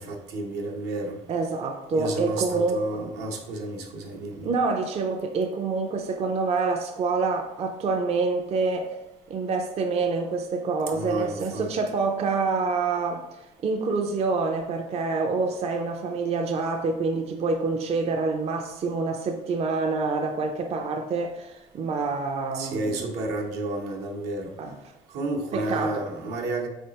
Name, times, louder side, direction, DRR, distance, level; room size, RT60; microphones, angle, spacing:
voice 1, 0.0-1.1 1.9-4.5 10.9-11.7 22.5-24.5 25.1-26.7, right 2 dB, 80° right, 0.9 m, -31 dB
voice 2, 1.3-3.1 4.4-9.0 9.3-13.2 13.6-23.0 24.6-24.8 25.5-26.1 26.3-26.4, right 4 dB, 40° right, 0.4 m, -27 dB
4.8 x 3.3 x 2.9 m
cardioid pair, 110°, 17 cm